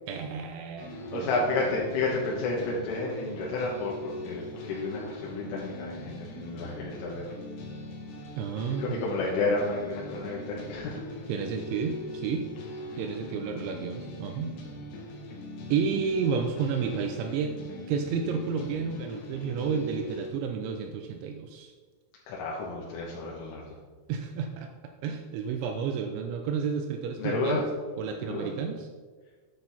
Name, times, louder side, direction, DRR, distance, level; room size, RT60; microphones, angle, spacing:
voice 1, 0.1-1.4 6.4-6.6 8.4-9.1 11.3-12.5 13.0-14.5 15.7-17.6 17.9-21.7 24.1-27.6 28.0-28.9, right 6 dB, 85° right, 5 dB, 2.9 m, -31 dB
sound 1, 0.8-20.3, left 1 dB, 70° left, 3.8 m, -41 dB
voice 2, 1.1-7.2 8.8-11.0 14.9-15.0 22.3-23.6 27.2-27.6 28.2-28.5, left 3 dB, 85° left, -4 dB, 3.9 m, -31 dB
10.0 x 8.7 x 4.3 m, 1.5 s
omnidirectional pair, 5.7 m